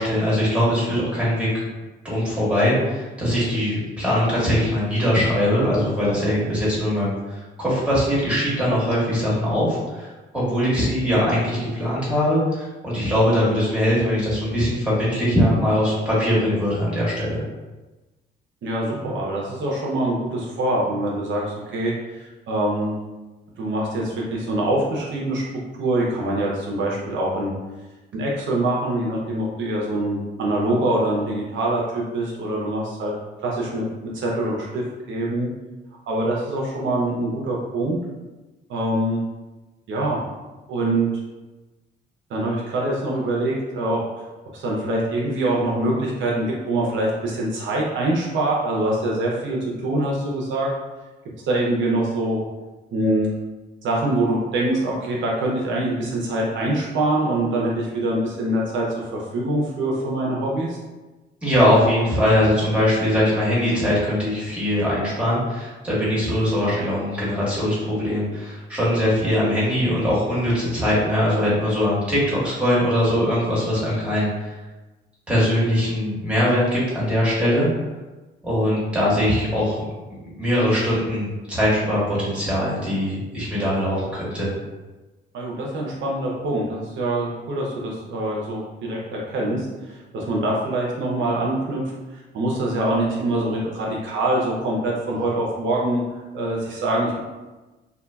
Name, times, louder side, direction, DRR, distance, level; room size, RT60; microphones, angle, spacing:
voice 1, 0.0-1.6 2.0-10.1 10.3-17.4 61.4-74.5 75.3-77.7 78.4-79.8 80.4-84.5, equal, 5° right, -8 dB, 1.4 m, -21 dB
voice 2, 18.6-23.0 23.6-25.4 25.8-27.5 28.1-33.1 33.4-33.8 34.1-35.5 36.1-38.0 38.7-39.2 39.9-40.2 40.7-41.1 42.3-44.3 44.5-50.7 51.4-52.4 52.9-53.3 53.8-58.9 59.1-60.8 85.3-96.0 96.3-97.2, right 1 dB, 70° right, -3 dB, 0.7 m, -24 dB
3.7 x 2.2 x 2.3 m, 1.2 s
cardioid pair, 90°, 20 cm